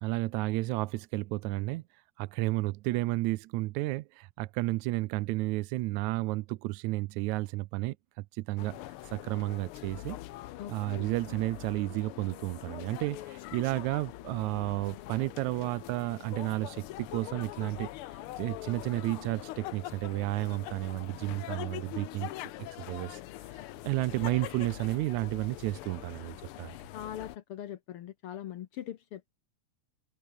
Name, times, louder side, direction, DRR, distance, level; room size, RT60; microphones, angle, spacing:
voice 1, 0.0-1.8 2.2-8.9 9.1-10.2 10.7-17.9 18.4-22.3 22.6-23.2 23.5-26.8, right 19 dB, 85° right, 2.0 m, -32 dB
sound 1, 8.6-27.4, left 15 dB, 85° left, 1.2 m, -43 dB
voice 2, 10.6-11.1 26.9-29.3, left 11 dB, 65° left, 1.5 m, -41 dB
omnidirectional pair, 3.3 m